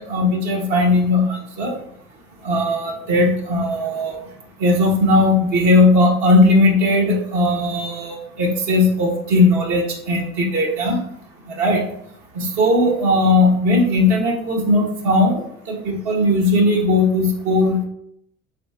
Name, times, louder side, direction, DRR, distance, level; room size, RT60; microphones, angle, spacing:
voice 1, 0.1-1.7 2.4-4.2 4.6-11.0 11.5-11.8 12.3-15.4 15.7-17.8, left 2 dB, 70° right, -2 dB, 1.3 m, -17 dB
3.4 x 3.3 x 4.3 m, 0.70 s
supercardioid pair, 105°, 30 cm